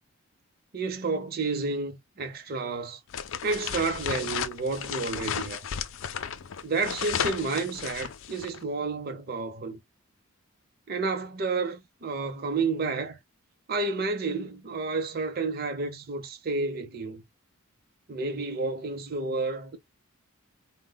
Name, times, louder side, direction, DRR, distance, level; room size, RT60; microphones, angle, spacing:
voice 1, 0.7-3.0 3.4-5.6 6.6-9.8 10.9-13.2 13.7-17.2 18.1-19.8, right 3 dB, 45° right, 0.6 m, -30 dB
sound 1, 3.1-8.6, left 8 dB, 65° left, 0.4 m, -34 dB
4.0 x 2.2 x 3.8 m
head